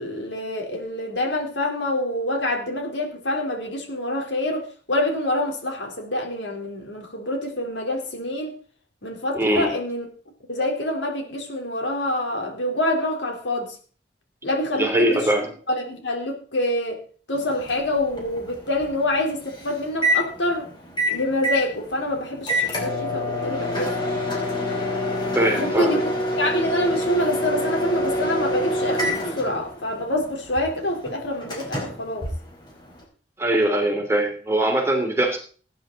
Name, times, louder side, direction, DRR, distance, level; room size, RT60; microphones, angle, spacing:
voice 1, 0.0-4.6 4.9-8.5 9.0-10.1 10.5-13.7 14.4-15.2 15.7-17.0 17.3-20.7 21.1-23.9 25.6-26.0 26.4-32.3, left 1 dB, 80° left, 2 dB, 3.9 m, -26 dB
voice 2, 9.3-9.7 14.8-15.5 25.3-26.0 33.4-35.4, right 1 dB, 15° right, 2 dB, 3.1 m, -21 dB
Microwave oven, 17.3-33.0, equal, 25° left, 4.7 m, -27 dB
18.5 x 9.8 x 4.0 m, 0.41 s
head